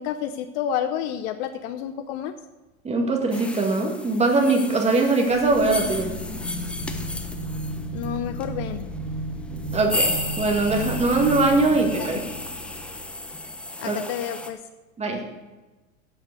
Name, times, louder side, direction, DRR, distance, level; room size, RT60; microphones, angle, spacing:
voice 1, 0.0-2.3 7.9-8.8 12.0-12.2 13.8-14.6, left 9 dB, 45° left, 10 dB, 0.8 m, -30 dB
voice 2, 2.8-6.1 9.7-12.2 13.8-14.0 15.0-15.2, right 3 dB, 15° right, 2 dB, 2.0 m, -21 dB
sound 1, 3.3-14.5, left 2 dB, 5° left, 0.4 m, -34 dB
sound 2, 5.3-13.5, equal, 25° left, 2.5 m, -33 dB
8.4 x 8.0 x 8.0 m, 1.2 s
hypercardioid pair, 125°, 42 cm